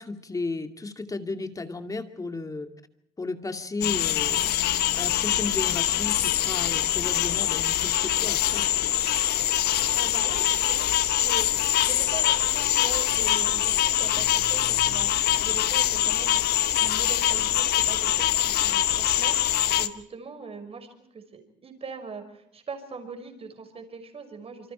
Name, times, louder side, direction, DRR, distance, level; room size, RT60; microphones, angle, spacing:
voice 1, 0.0-2.7 3.2-4.6 5.0-8.7, left 3 dB, 20° left, 7 dB, 2.5 m, -34 dB
sound 1, 3.8-19.9, left 12 dB, 70° left, 1.3 m, -24 dB
voice 2, 10.0-10.9 11.2-16.4 16.7-20.9 21.1-24.7, right 4 dB, 35° right, 6 dB, 5.6 m, -41 dB
27.5 x 25.5 x 4.5 m, 0.73 s
cardioid pair, 110°, 17 cm